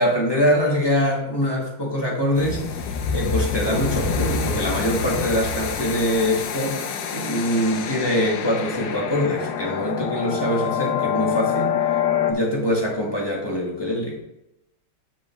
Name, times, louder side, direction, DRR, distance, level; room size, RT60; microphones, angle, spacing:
voice 1, 0.0-6.8 7.1-11.7 12.3-14.2, equal, 15° left, -3 dB, 1.6 m, -23 dB
sound 1, 2.4-12.3, left 7 dB, 75° left, 1.4 m, -26 dB
8.7 x 5.2 x 3.4 m, 0.86 s
omnidirectional pair, 2.0 m